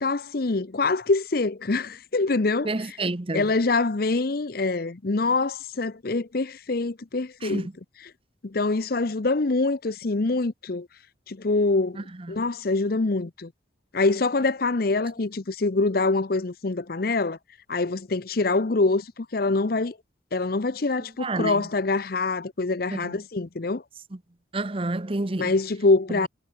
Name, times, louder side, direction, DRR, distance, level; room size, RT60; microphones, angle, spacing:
voice 1, 0.0-2.7 3.3-7.7 8.4-10.9 11.3-13.5 13.9-17.4 17.7-20.0 20.3-23.8 25.4-26.3, left 3 dB, 50° left, 0.7 m, -25 dB
voice 2, 2.6-3.5 7.4-7.7 11.9-12.4 21.2-21.7 22.9-23.2 24.5-25.5 26.1-26.3, right 2 dB, 30° right, 0.8 m, -30 dB
head